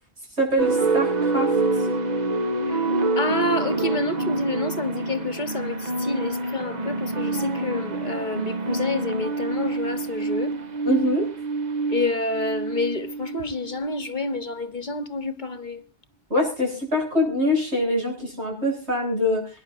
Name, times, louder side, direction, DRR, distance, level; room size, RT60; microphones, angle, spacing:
voice 1, 0.4-1.5 10.8-11.3 16.3-19.5, left 1 dB, 75° right, 8.2 m, -24 dB
sound 1, 0.6-13.9, right 3 dB, 40° right, 1.3 m, -26 dB
voice 2, 3.2-10.5 11.9-15.8, left 2 dB, 45° left, 1.2 m, -28 dB
26.5 x 10.5 x 2.6 m
omnidirectional pair, 1.1 m